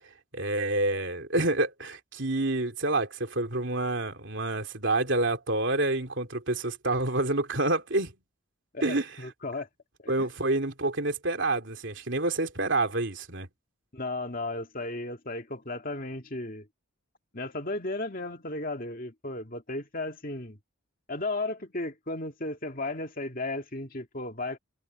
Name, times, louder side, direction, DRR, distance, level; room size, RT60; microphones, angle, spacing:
voice 1, 0.3-8.1 8.8-9.1 10.1-13.5, right 2 dB, 60° right, 3.3 m, -28 dB
voice 2, 8.7-9.7 10.0-10.3 13.9-16.7 17.3-20.6 21.1-24.6, left 2 dB, 40° left, 2.3 m, -35 dB
head